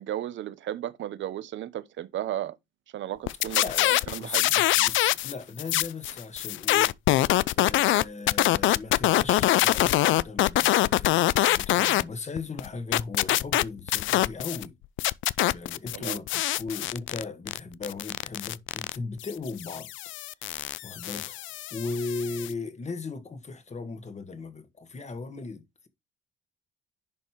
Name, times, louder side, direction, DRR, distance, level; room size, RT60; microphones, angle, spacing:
voice 1, 0.0-2.6 2.9-3.6 4.1-4.5 15.9-16.2, right 12 dB, 70° right, 0.9 m, -34 dB
sound 1, 3.3-5.3 5.6-12.0 12.4-14.7 15.0-22.5, left 15 dB, 75° left, 0.4 m, -24 dB
voice 2, 3.6-6.9 7.5-14.7 15.5-19.9 20.8-25.9, left 3 dB, 35° left, 1.6 m, -37 dB
10.5 x 5.4 x 3.1 m
cardioid pair, 90°, 20 cm